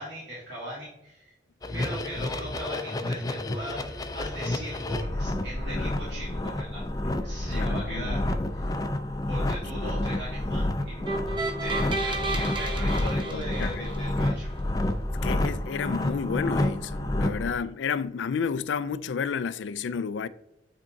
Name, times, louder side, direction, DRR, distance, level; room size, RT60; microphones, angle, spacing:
voice 1, 0.0-1.3 1.7-8.8 9.3-11.1 11.6-14.5, equal, 70° right, 2.7 m, -39 dB
sound 1, 1.6-17.5, left 1 dB, 20° left, 0.5 m, -29 dB
voice 2, 7.5-8.2 9.8-9.9 13.3-14.1 15.2-20.3, left 6 dB, 80° left, 0.4 m, -31 dB
sound 2, 11.1-14.3, right 2 dB, 25° right, 1.0 m, -32 dB
8.9 x 3.7 x 4.0 m
head